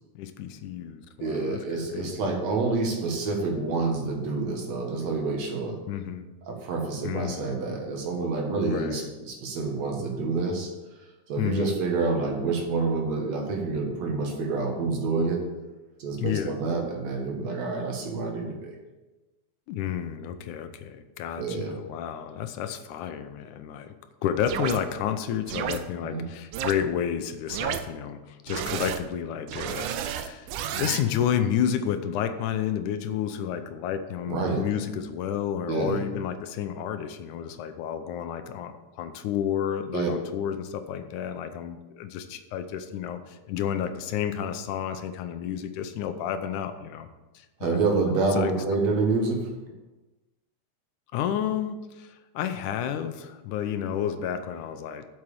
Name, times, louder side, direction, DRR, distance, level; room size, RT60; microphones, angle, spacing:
voice 1, 0.2-1.6 1.9-2.4 5.9-6.3 7.0-7.6 8.6-9.1 11.4-11.7 16.2-16.6 19.7-24.0 24.2-30.5 30.8-47.1 47.3-47.8 48.2-48.5 51.1-55.1, left 9 dB, 85° left, 9 dB, 2.3 m, -31 dB
voice 2, 1.2-5.8 6.5-10.7 11.3-15.4 16.0-18.8 21.4-21.8 26.0-26.2 34.3-34.6 35.7-36.0 39.9-40.1 47.6-49.5, right 3 dB, 65° right, 1 dB, 2.8 m, -28 dB
sound 1, 24.5-24.8 25.5-25.8 26.5-26.7 27.5-27.8 28.5-29.0 29.5-31.0, right 9 dB, 90° right, 2.1 m, -31 dB
7.9 x 7.2 x 7.1 m, 1.1 s
omnidirectional pair, 3.4 m